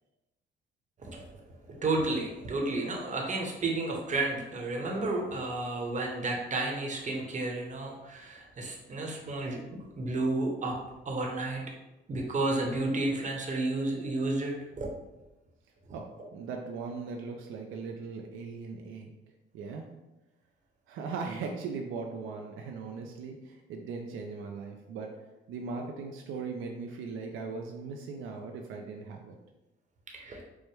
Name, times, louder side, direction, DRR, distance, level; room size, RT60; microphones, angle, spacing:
voice 1, 1.8-9.6 10.0-10.8 11.1-11.6 12.1-14.9 30.1-30.4, right 2 dB, 40° right, 0 dB, 0.9 m, -31 dB
voice 2, 15.9-19.1 19.5-19.8 20.9-25.1 25.5-29.4, right 4 dB, 80° right, 2 dB, 0.4 m, -39 dB
4.6 x 2.1 x 3.2 m, 1.0 s
cardioid pair, 90°, 20 cm